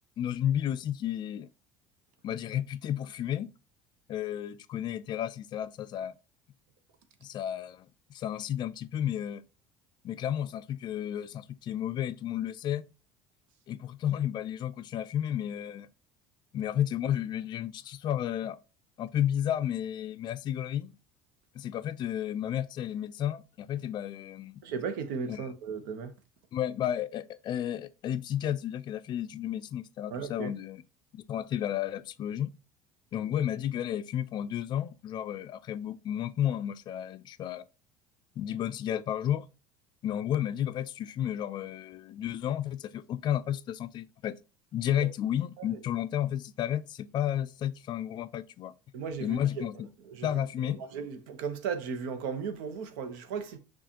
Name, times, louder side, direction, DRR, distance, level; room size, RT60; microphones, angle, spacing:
voice 1, 0.2-1.5 2.2-3.5 4.1-6.1 7.2-9.4 10.0-12.8 13.7-15.9 16.5-18.6 19.0-20.9 21.5-24.6 25.3-25.5 26.5-30.8 31.1-32.5 33.1-37.6 38.4-39.5 40.0-44.4 44.7-48.7 49.2-49.9 50.2-50.8, left 10 dB, 45° left, 0.4 m, -32 dB
voice 2, 24.6-26.1 30.1-30.5 44.9-45.1 45.6-45.8 48.9-49.6 50.0-50.3 50.8-53.6, right 6 dB, 80° right, 0.8 m, -36 dB
6.2 x 2.4 x 2.7 m
supercardioid pair, 100°, 10 cm